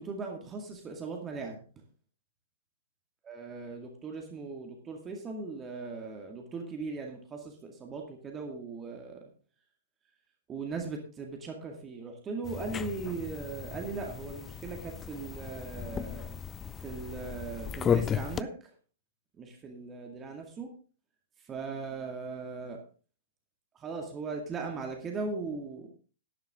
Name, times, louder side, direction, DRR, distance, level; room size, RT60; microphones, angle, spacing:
voice 1, 0.0-1.6 3.3-9.2 10.5-16.4 16.8-18.5 19.4-20.7 21.5-22.8 23.7-25.9, right 4 dB, 15° right, 2 dB, 2.1 m, -38 dB
sound 1, 12.4-18.4, left 8 dB, 15° left, 0.4 m, -35 dB
12.5 x 10.5 x 3.7 m, 0.37 s
figure-of-eight pair, 115°, 0 cm